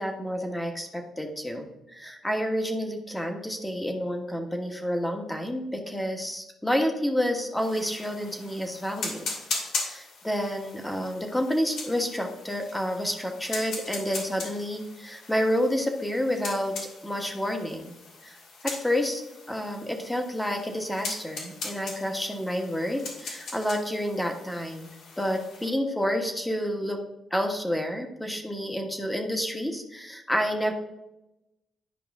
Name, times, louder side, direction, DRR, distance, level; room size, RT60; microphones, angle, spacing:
voice 1, 0.0-17.9 18.2-18.4 18.6-19.2 19.5-24.9 25.2-27.0 27.3-30.7, equal, 10° left, 4 dB, 1.3 m, -29 dB
sound 1, 7.6-25.7, left 3 dB, 75° left, 2.4 m, -39 dB
11.0 x 5.0 x 3.6 m, 0.94 s
cardioid pair, 90°, 0 cm